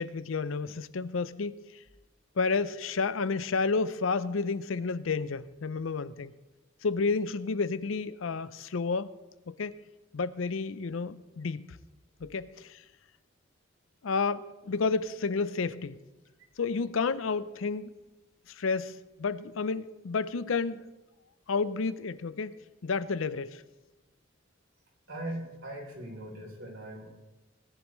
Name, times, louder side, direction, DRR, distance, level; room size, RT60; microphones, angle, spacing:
voice 1, 0.0-1.6 2.4-6.3 6.8-9.1 9.5-9.8 10.1-11.6 12.2-12.8 14.0-16.0 16.6-17.9 18.5-20.8 21.5-22.5 22.8-23.6, left 4 dB, 85° left, 0.6 m, -31 dB
voice 2, 25.1-27.2, right 1 dB, 75° right, 3.7 m, -40 dB
18.5 x 10.5 x 3.1 m
head